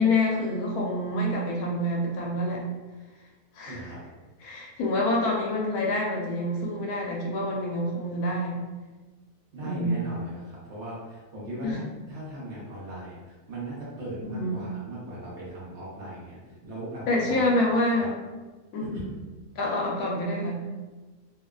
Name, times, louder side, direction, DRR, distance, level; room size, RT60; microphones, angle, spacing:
voice 1, 0.0-2.6 3.5-3.9 4.4-8.6 9.6-10.1 11.6-11.8 14.2-14.6 17.1-18.1 18.7-19.1 19.6-20.6, left 1 dB, 80° left, -1 dB, 1.1 m, -27 dB
voice 2, 3.7-4.0 9.5-17.5 18.8-19.1, right 1 dB, 60° right, -8 dB, 0.8 m, -38 dB
2.8 x 2.0 x 2.3 m, 1.3 s
omnidirectional pair, 1.6 m